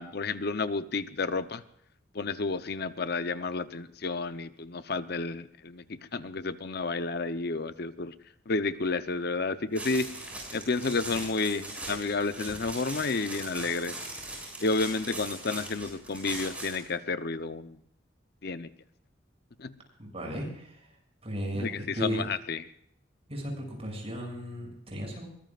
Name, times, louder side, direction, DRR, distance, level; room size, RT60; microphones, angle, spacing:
voice 1, 0.0-1.6 2.1-5.8 6.1-8.1 8.5-10.1 10.5-14.0 14.6-17.8 18.4-18.7 19.6-19.7 21.5-22.6, left 3 dB, 60° left, 11 dB, 0.8 m, -31 dB
sound 1, 9.7-16.9, right 2 dB, 5° right, 7.3 m, -40 dB
voice 2, 20.0-20.9 21.2-22.2 23.3-25.3, equal, 35° right, 1 dB, 7.0 m, -35 dB
23.0 x 19.5 x 2.5 m, 0.70 s
head